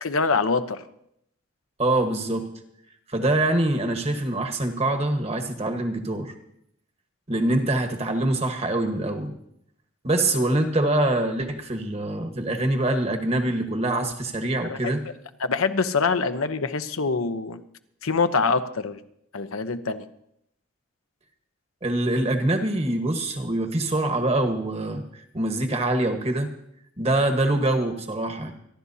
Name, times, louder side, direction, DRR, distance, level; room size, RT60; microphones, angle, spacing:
voice 1, 0.0-0.8 10.3-10.4 14.7-14.8 15.4-17.6 18.0-19.0 19.3-20.0, left 4 dB, 90° left, 9 dB, 0.8 m, -24 dB
voice 2, 1.8-2.5 3.1-6.3 7.3-9.3 10.0-15.0 21.8-25.0 25.3-26.5 27.0-28.5, right 1 dB, 30° right, 5 dB, 1.3 m, -24 dB
27.5 x 11.5 x 2.8 m, 0.76 s
head